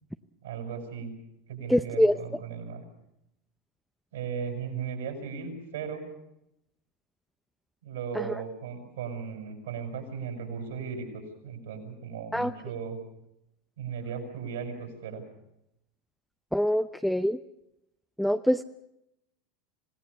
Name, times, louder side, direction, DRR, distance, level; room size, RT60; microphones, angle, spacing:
voice 1, 0.4-1.1 1.5-2.8 4.1-6.0 7.8-13.0 13.8-15.2, right 6 dB, 80° right, 3 dB, 7.0 m, -36 dB
voice 2, 1.7-2.2 8.1-8.3 12.3-12.5 16.5-17.4 18.2-18.6, equal, ahead, 8 dB, 0.8 m, -24 dB
27.0 x 18.0 x 7.1 m, 0.84 s
hypercardioid pair, 85°, 0 cm